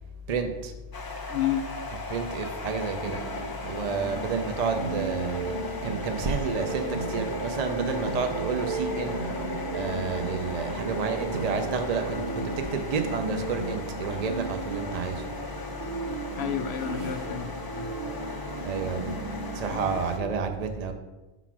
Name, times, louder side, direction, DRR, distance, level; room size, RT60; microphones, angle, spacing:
voice 1, 0.3-0.7 2.1-3.2 3.6-9.4 9.7-15.2 18.6-19.2 19.5-20.9, right 5 dB, 50° right, 5 dB, 0.5 m, -30 dB
sound 1, 0.9-20.2, left 3 dB, 30° left, 0.5 m, -38 dB
voice 2, 1.3-1.7 16.4-17.9 19.7-20.3, left 10 dB, 80° left, 8 dB, 0.9 m, -31 dB
sound 2, 3.0-19.8, right 3 dB, 75° right, 1.8 m, -35 dB
Bowed string instrument, 11.3-15.9, right 2 dB, 55° left, 1.0 m, -47 dB
5.9 x 4.0 x 5.8 m, 1.1 s
omnidirectional pair, 1.1 m